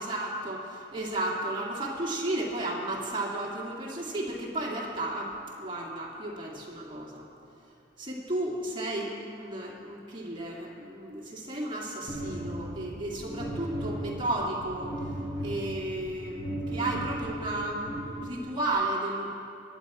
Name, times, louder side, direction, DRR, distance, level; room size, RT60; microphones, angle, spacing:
voice 1, 0.0-7.2 8.0-14.9 15.4-19.3, right 1 dB, 25° right, -3 dB, 2.0 m, -33 dB
sound 1, 12.1-18.7, right 1 dB, 40° left, 4.2 m, -36 dB
22.0 x 8.8 x 4.8 m, 2.6 s
head